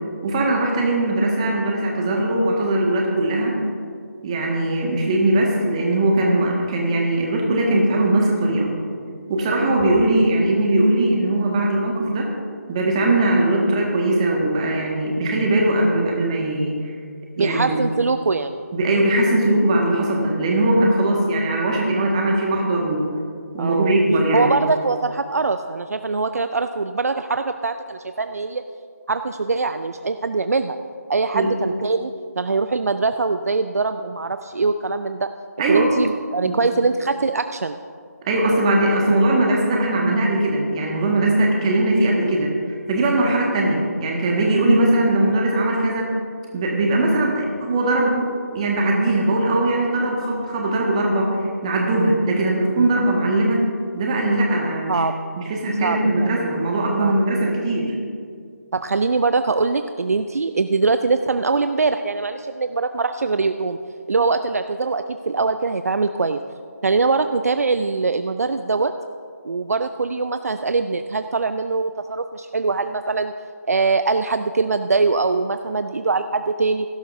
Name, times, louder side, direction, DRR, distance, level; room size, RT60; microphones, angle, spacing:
voice 1, 0.2-3.5 4.2-8.7 9.3-12.3 12.7-16.9 17.4-17.8 18.7-23.1 23.5-24.5 31.3-31.5 35.6-35.9 36.4-36.6 38.2-42.5 42.9-46.1 46.5-51.4 51.6-53.6 53.9-55.0 55.4-57.9, right 1 dB, 20° right, -1 dB, 1.7 m, -20 dB
voice 2, 17.4-18.6 23.6-24.0 24.3-28.6 29.1-30.8 31.1-35.3 35.7-37.8 54.9-55.1 55.8-56.3 57.0-57.1 58.7-63.8 64.1-66.4 66.8-68.9 69.4-73.3 73.7-76.9, right 4 dB, 60° right, 9 dB, 0.5 m, -22 dB
17.0 x 12.0 x 2.7 m, 2.2 s
figure-of-eight pair, 160°, 9 cm